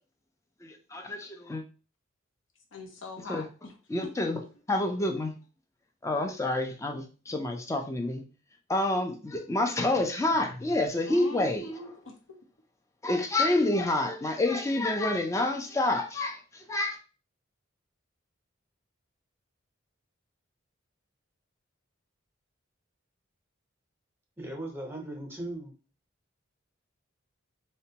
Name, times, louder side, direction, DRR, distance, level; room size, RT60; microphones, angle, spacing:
voice 1, 0.6-1.6 3.3-3.4 3.9-4.4 4.7-5.3 6.0-8.2 8.7-11.7 13.0-17.0, left 2 dB, 15° left, 4 dB, 0.5 m, -28 dB
voice 2, 2.7-3.7 4.2-4.3 11.0-12.4, left 1 dB, 70° left, 4 dB, 0.7 m, -42 dB
voice 3, 24.4-25.7, right 1 dB, 10° right, 0 dB, 0.9 m, -38 dB
4.1 x 2.2 x 2.8 m, 0.35 s
head